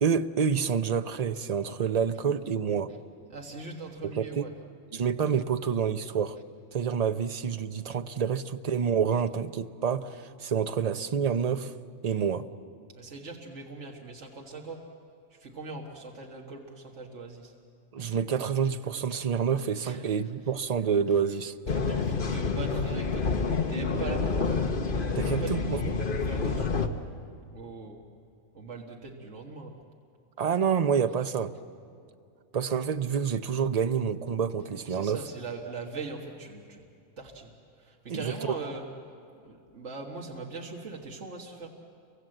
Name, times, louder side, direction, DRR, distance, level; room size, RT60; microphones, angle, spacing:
voice 1, 0.0-2.9 4.0-4.4 4.9-6.4 6.7-11.7 12.0-12.5 17.9-21.5 25.2-25.8 30.4-31.5 32.5-35.2 38.1-38.3, right 7 dB, 35° right, 9 dB, 0.7 m, -28 dB
voice 2, 3.3-4.5 13.0-14.8 15.4-17.5 19.8-20.0 21.7-23.3 23.7-24.7 25.2-27.0 27.5-28.0 28.5-29.7 34.9-36.8 37.2-37.5 37.8-38.9 39.3-41.7, right 3 dB, 70° right, 0 dB, 2.1 m, -40 dB
sound 1, 21.7-26.9, left 4 dB, 45° left, 1.3 m, -28 dB
29.5 x 24.5 x 7.8 m, 2.4 s
omnidirectional pair, 1.3 m